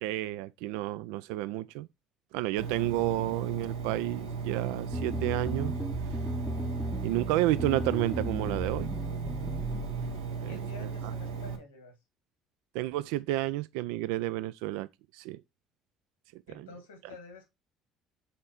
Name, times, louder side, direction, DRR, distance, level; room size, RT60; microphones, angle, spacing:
voice 1, 0.0-1.9 2.3-5.7 7.0-9.0 10.4-10.9 12.7-14.9 15.1-15.4 16.3-16.7, right 16 dB, 75° right, 0.3 m, -31 dB
Engine, 2.6-11.6, right 6 dB, 90° right, 1.3 m, -36 dB
sound 1, 4.9-10.3, equal, ahead, 0.6 m, -36 dB
voice 2, 10.4-12.0 16.5-17.5, left 3 dB, 90° left, 2.0 m, -49 dB
6.8 x 4.2 x 4.3 m
hypercardioid pair, 60°, 0 cm